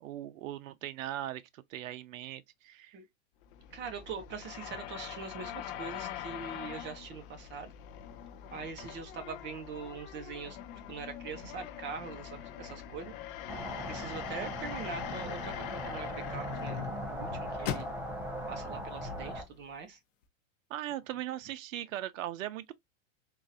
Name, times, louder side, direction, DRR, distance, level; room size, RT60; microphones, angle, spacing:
voice 1, 0.0-3.0 20.7-22.7, right 13 dB, 80° right, 0.6 m, -39 dB
sound 1, 3.4-19.8, left 11 dB, 45° left, 0.5 m, -44 dB
voice 2, 3.7-7.7 8.5-10.6 10.9-13.1 13.9-17.9 18.5-20.0, right 5 dB, 30° right, 0.9 m, -42 dB
sound 2, 13.5-19.4, equal, 5° right, 0.5 m, -39 dB
sound 3, 14.1-20.3, left 10 dB, 80° left, 0.8 m, -45 dB
3.8 x 2.5 x 2.6 m
supercardioid pair, 140°, 39 cm